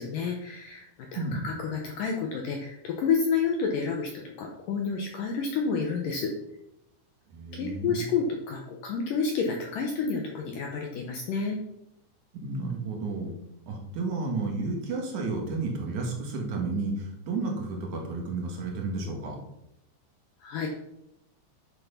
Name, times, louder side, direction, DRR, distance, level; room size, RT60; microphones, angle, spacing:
voice 1, 0.0-6.3 7.5-11.6 20.4-20.7, left 5 dB, 80° left, 1 dB, 1.9 m, -30 dB
voice 2, 1.2-1.5 7.3-8.1 12.3-13.3 13.7-19.4, right 3 dB, 50° right, 1 dB, 2.7 m, -32 dB
11.0 x 6.1 x 5.7 m, 0.83 s
omnidirectional pair, 5.3 m